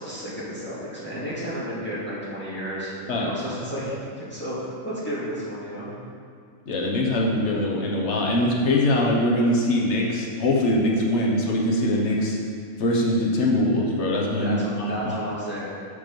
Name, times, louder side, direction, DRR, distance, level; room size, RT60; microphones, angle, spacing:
voice 1, 0.0-4.6 4.8-5.9 14.4-15.7, equal, 10° left, -10 dB, 2.1 m, -32 dB
voice 2, 6.7-12.4 12.8-15.2, left 1 dB, 55° left, -2 dB, 1.3 m, -22 dB
6.8 x 5.9 x 5.3 m, 2.2 s
omnidirectional pair, 1.4 m